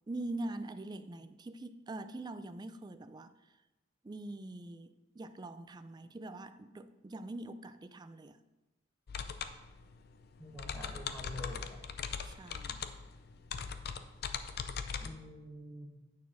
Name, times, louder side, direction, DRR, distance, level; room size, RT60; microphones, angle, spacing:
voice 1, 0.1-3.3 4.0-8.4 12.2-12.8, right 2 dB, 20° right, 0.4 m, -43 dB
sound 1, 9.1-15.1, left 6 dB, 55° left, 0.5 m, -40 dB
voice 2, 10.4-11.8 15.0-15.9, left 1 dB, 10° left, 1.3 m, -46 dB
9.4 x 4.3 x 6.0 m
head